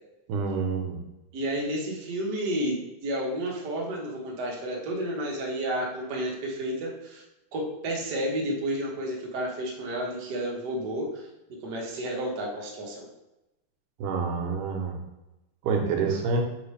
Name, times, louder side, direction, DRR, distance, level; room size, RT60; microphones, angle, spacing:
voice 1, 0.3-1.0 14.0-15.0 15.6-16.4, right 4 dB, 80° right, 2 dB, 2.4 m, -27 dB
voice 2, 1.3-7.2 7.5-11.3 11.6-13.1, right 1 dB, 55° right, -2 dB, 1.1 m, -31 dB
6.3 x 4.9 x 3.3 m, 0.97 s
omnidirectional pair, 3.7 m